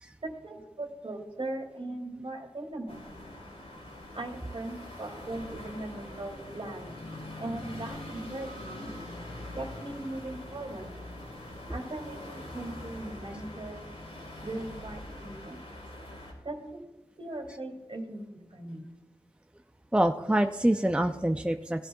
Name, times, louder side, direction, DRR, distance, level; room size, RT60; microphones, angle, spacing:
voice 1, 0.2-3.1 4.1-7.0 7.4-8.9 9.5-10.9 11.7-13.9 14.4-15.6 16.4-16.8 17.2-18.9, right 2 dB, 50° right, 3 dB, 2.4 m, -39 dB
sound 1, 2.9-16.3, left 1 dB, 65° left, 3.8 m, -43 dB
voice 2, 19.9-21.9, right 1 dB, 10° right, 6 dB, 0.5 m, -26 dB
17.5 x 11.0 x 2.3 m, 1.1 s
cardioid pair, 45°, 12 cm